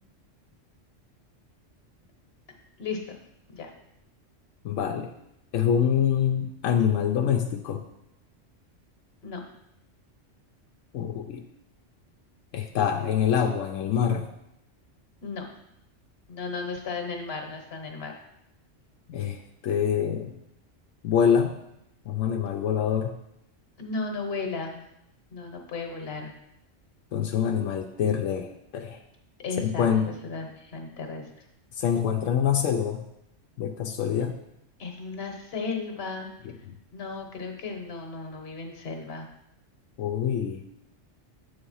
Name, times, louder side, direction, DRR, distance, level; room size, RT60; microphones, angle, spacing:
voice 1, 2.5-3.2 3.5-3.7 9.2-9.4 15.2-15.5 16.3-18.1 23.8-24.8 25.3-26.3 29.4-31.3 34.8-36.3 36.9-39.3, left 4 dB, 55° left, 3 dB, 1.2 m, -35 dB
voice 2, 4.6-5.1 5.5-7.8 10.9-11.4 12.5-14.3 19.1-20.3 21.0-21.5 22.1-23.1 27.1-29.0 29.6-30.1 31.8-33.1 33.6-34.4 36.7-36.8 40.0-40.6, left 8 dB, 85° left, 4 dB, 1.0 m, -25 dB
8.0 x 3.9 x 5.5 m, 0.81 s
omnidirectional pair, 1.3 m